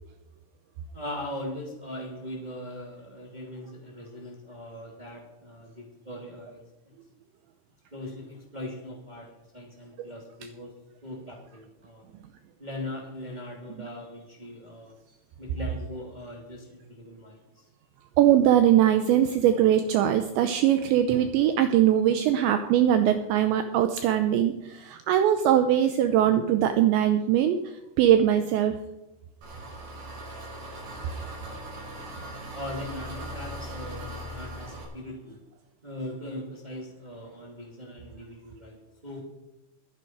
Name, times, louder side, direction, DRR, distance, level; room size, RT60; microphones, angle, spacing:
voice 1, 0.9-6.6 7.9-9.3 9.5-10.7 11.0-12.0 12.6-14.9 15.4-17.6 32.5-35.4 35.8-38.8 39.0-39.2, left 1 dB, 15° right, -1 dB, 1.3 m, -40 dB
voice 2, 18.2-27.6 28.0-28.8, right 11 dB, 85° right, 8 dB, 2.6 m, -21 dB
Engine, 29.4-34.8, right 1 dB, 60° right, 8.3 m, -39 dB
21.0 x 9.9 x 4.7 m, 0.94 s
omnidirectional pair, 6.0 m